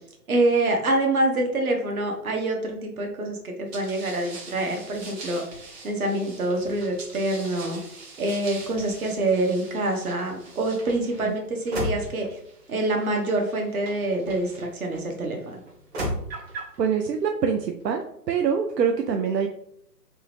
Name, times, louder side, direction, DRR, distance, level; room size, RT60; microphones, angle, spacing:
voice 1, 0.3-7.8 8.2-12.4 12.7-15.6, right 2 dB, 60° right, 2 dB, 1.2 m, -26 dB
sound 1, 3.7-15.0 15.7-16.8, right 1 dB, 40° right, 1.3 m, -38 dB
voice 2, 16.5-19.5, right 6 dB, 80° right, 4 dB, 0.6 m, -25 dB
3.5 x 3.0 x 3.3 m, 0.73 s
figure-of-eight pair, 145°, 49 cm